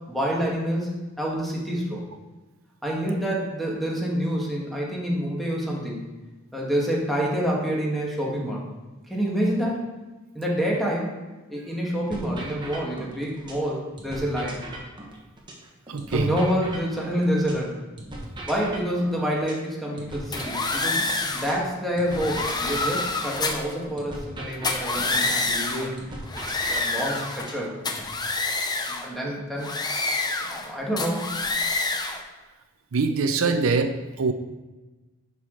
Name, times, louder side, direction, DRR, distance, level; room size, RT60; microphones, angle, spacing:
voice 1, 0.1-2.0 2.8-6.0 6.5-8.7 9.1-9.9 10.3-11.1 11.5-14.6 16.1-17.7 18.5-21.1 21.3-26.0 26.7-27.7 29.0-29.7 30.5-31.4 33.4-33.6, equal, ahead, -4 dB, 1.6 m, -27 dB
sound 1, 12.1-13.7 14.0-17.7 18.0-21.7 22.0-25.7 26.0-28.1, right 2 dB, 20° right, 1.2 m, -39 dB
voice 2, 15.9-16.3 32.9-33.9 34.2-34.3, right 4 dB, 75° right, 8 dB, 0.5 m, -23 dB
sound 2, 20.3-21.5 22.1-23.7 24.5-25.9 26.3-27.5 27.8-29.1 29.6-30.7 31.0-32.2, left 3 dB, 20° left, 0.7 m, -27 dB
10.5 x 4.9 x 3.8 m, 1.2 s
head